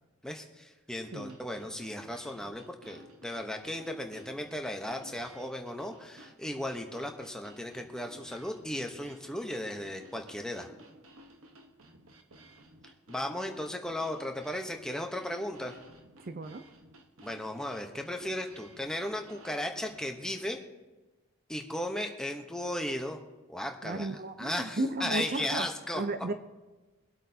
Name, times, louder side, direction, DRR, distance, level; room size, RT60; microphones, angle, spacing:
voice 1, 0.2-10.7 13.1-15.8 17.2-20.6 21.5-23.2 23.5-24.1 24.4-26.0, left 1 dB, 5° left, 3 dB, 0.9 m, -36 dB
sound 1, 1.0-20.1, right 1 dB, 80° right, 1.2 m, -55 dB
voice 2, 16.2-16.6 23.8-25.7 25.9-26.3, right 2 dB, 45° right, 9 dB, 0.5 m, -34 dB
23.5 x 8.2 x 2.8 m, 1.2 s
head